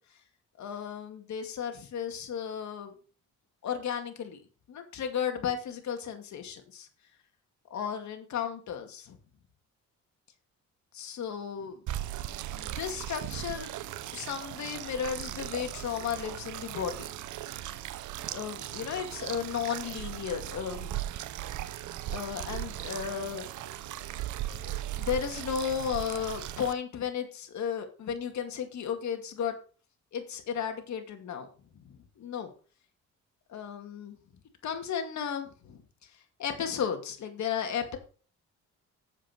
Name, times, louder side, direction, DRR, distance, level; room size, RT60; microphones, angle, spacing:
voice 1, 0.6-2.9 3.6-4.4 4.7-6.9 7.7-9.2 10.9-11.8 12.5-13.7 14.1-17.1 18.3-21.0 22.1-23.5 24.6-29.5 30.1-31.5 31.7-32.5 33.5-34.2 34.6-35.8 36.4-38.0, left 8 dB, 65° left, 5 dB, 2.3 m, -34 dB
sound 1, 11.9-26.7, right 13 dB, 80° right, 0.8 m, -38 dB
7.8 x 7.5 x 5.1 m, 0.38 s
cardioid pair, 90°, 30 cm